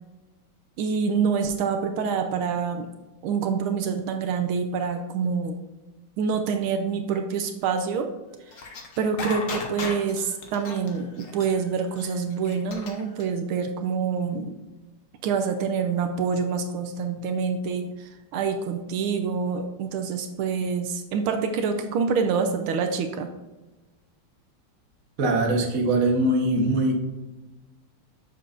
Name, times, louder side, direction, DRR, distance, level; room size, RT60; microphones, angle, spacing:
voice 1, 0.8-2.9 3.2-5.6 6.2-8.1 8.5-8.6 9.0-14.6 15.2-23.3, right 5 dB, 80° right, 6 dB, 1.5 m, -26 dB
sound 1, 8.5-13.2, left 4 dB, 55° left, 0.9 m, -35 dB
voice 2, 25.2-27.0, right 1 dB, 50° right, 1 dB, 1.3 m, -22 dB
6.8 x 6.7 x 2.5 m, 1.1 s
omnidirectional pair, 2.3 m